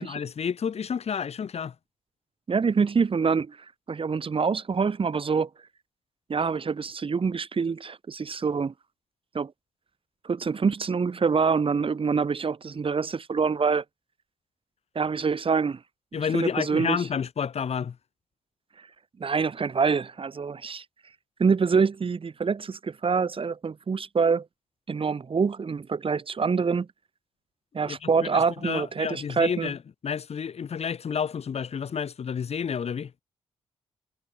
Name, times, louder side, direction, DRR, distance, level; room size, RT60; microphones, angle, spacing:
voice 1, 0.0-1.7 16.1-18.0 27.8-33.1, left 7 dB, 60° left, 5.3 m, -30 dB
voice 2, 2.5-3.6 3.9-5.5 6.3-8.7 9.3-9.5 10.2-13.8 15.0-15.8 16.1-17.0 19.2-20.8 21.4-24.5 24.9-26.9 27.7-29.7, right 5 dB, 50° right, 3.7 m, -25 dB
supercardioid pair, 50°, 12 cm